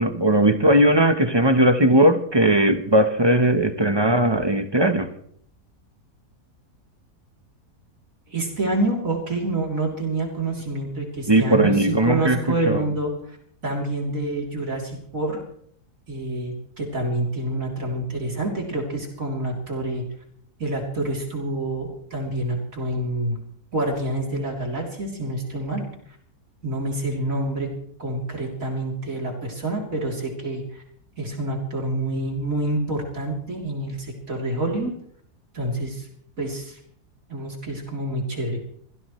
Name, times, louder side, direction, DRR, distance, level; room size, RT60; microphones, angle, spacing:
voice 1, 0.0-5.1 11.3-12.4 12.7-12.9, right 1 dB, 20° right, 8 dB, 0.8 m, -18 dB
voice 2, 8.3-13.4 13.6-15.4 16.1-20.0 20.6-23.4 23.7-25.8 26.6-27.7 28.0-30.8 31.2-34.9 35.5-36.1 36.4-36.8 37.3-38.6, right 2 dB, 55° right, 0 dB, 3.7 m, -27 dB
26.0 x 16.5 x 3.2 m, 0.63 s
omnidirectional pair, 1.7 m